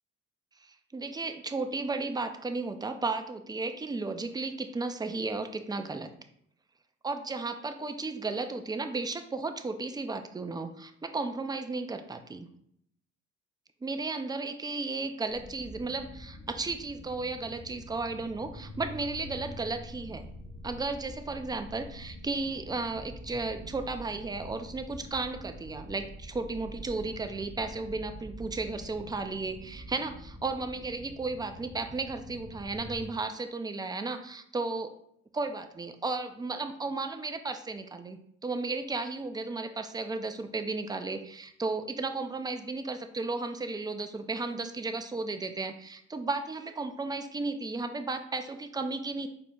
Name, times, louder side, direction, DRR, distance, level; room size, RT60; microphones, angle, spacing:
voice 1, 0.6-6.1 7.0-12.5 13.8-20.3 20.6-35.0 35.3-49.3, right 3 dB, 15° right, 7 dB, 0.3 m, -34 dB
sound 1, 15.3-33.0, equal, 85° left, 1.1 m, -46 dB
4.3 x 3.7 x 2.3 m, 0.70 s
cardioid pair, 90°, 30 cm